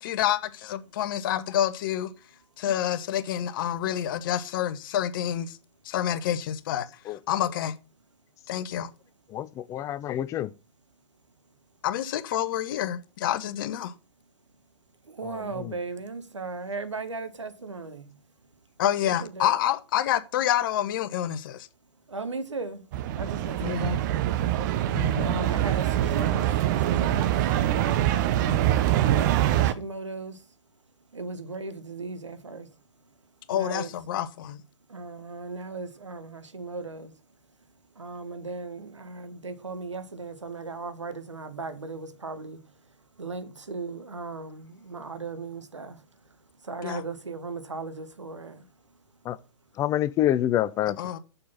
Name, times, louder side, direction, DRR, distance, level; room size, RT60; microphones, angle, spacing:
voice 1, 0.0-2.1 2.6-5.6 5.8-7.7 8.5-8.9 11.8-13.9 18.8-21.7 23.6-24.0 24.9-25.5 28.5-28.7 33.5-34.6 46.8-47.0 51.0-51.2, left 11 dB, 45° left, 1.0 m, -28 dB
voice 2, 9.3-10.5 15.2-15.7 49.2-49.4 49.8-51.0, left 12 dB, 20° left, 0.5 m, -27 dB
voice 3, 15.0-18.2 19.0-19.6 22.1-22.9 23.1-24.3 25.2-27.6 28.9-30.6 31.1-32.7 33.0-33.1 33.5-33.9 34.9-37.2 37.9-42.8 43.2-48.9, right 3 dB, 80° right, 1.3 m, -37 dB
sound 1, 22.9-29.7, right 12 dB, 40° right, 0.8 m, -24 dB
6.9 x 6.7 x 5.7 m
figure-of-eight pair, 115°, 15 cm